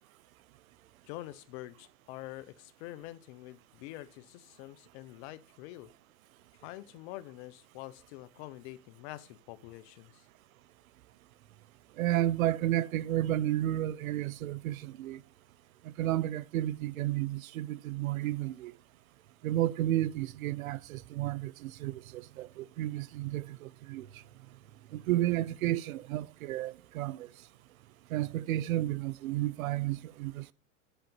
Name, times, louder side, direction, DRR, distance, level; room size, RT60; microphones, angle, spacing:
voice 1, 1.1-5.9 6.6-10.3, left 16 dB, 50° left, 1.0 m, -46 dB
voice 2, 12.0-15.2 16.0-18.7 19.4-24.1 24.9-27.3 28.1-30.5, right 14 dB, 75° right, 0.7 m, -32 dB
10.0 x 5.2 x 5.8 m
hypercardioid pair, 125°, 42 cm